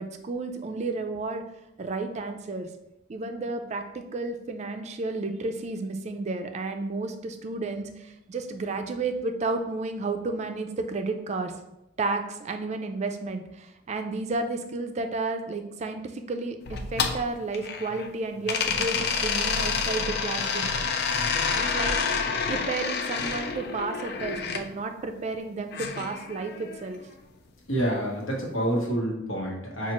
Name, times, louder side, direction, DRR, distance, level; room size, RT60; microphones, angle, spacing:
voice 1, 0.0-1.4 1.8-2.7 3.1-11.5 12.0-20.7 21.5-27.0, right 3 dB, 35° right, 6 dB, 0.3 m, -32 dB
sound 1, 16.7-18.1 18.5-24.6 25.7-26.9, left 5 dB, 55° left, 0.4 m, -28 dB
voice 2, 27.7-29.9, right 1 dB, 90° left, -2 dB, 1.1 m, -28 dB
5.6 x 2.4 x 2.9 m, 0.88 s
head